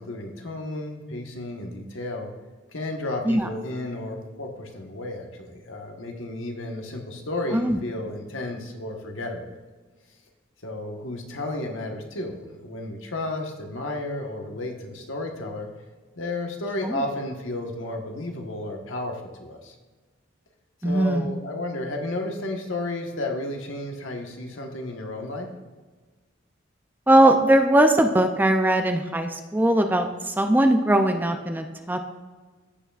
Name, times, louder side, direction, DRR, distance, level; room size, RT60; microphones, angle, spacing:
voice 1, 0.0-2.3 2.7-9.5 10.6-15.7 16.1-19.7 20.8-25.5, left 2 dB, 75° left, 2 dB, 1.3 m, -32 dB
voice 2, 20.8-21.3 27.1-32.0, right 1 dB, 10° right, 6 dB, 0.4 m, -20 dB
15.5 x 5.7 x 2.4 m, 1.3 s
head